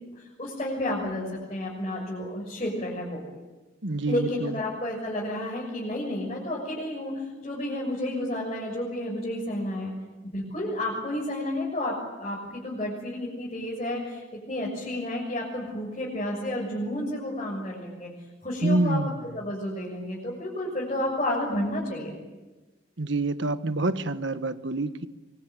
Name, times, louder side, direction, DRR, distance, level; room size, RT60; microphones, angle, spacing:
voice 1, 0.4-3.2 4.1-9.9 10.2-18.1 18.4-19.0 19.3-22.2, left 1 dB, 35° left, -4 dB, 6.8 m, -31 dB
voice 2, 3.8-4.6 18.6-19.1 23.0-25.1, right 2 dB, 75° right, 11 dB, 1.3 m, -27 dB
25.0 x 24.0 x 9.4 m, 1.2 s
head